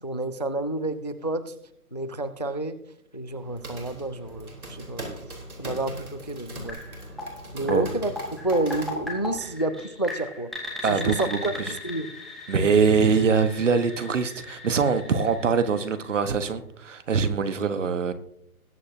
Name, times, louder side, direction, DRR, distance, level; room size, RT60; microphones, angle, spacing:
voice 1, 0.0-1.5 1.9-2.8 3.1-5.0 5.6-6.8 7.5-8.1 8.4-10.5 10.9-12.1, right 2 dB, 30° left, 0.4 m, -29 dB
sound 1, 3.3-9.5, right 1 dB, 70° right, 3.8 m, -40 dB
sound 2, 6.7-16.5, left 2 dB, ahead, 1.4 m, -38 dB
voice 2, 10.8-11.7 12.5-18.1, right 5 dB, 55° right, 1.3 m, -23 dB
20.5 x 8.1 x 2.7 m
figure-of-eight pair, 145°, 45 cm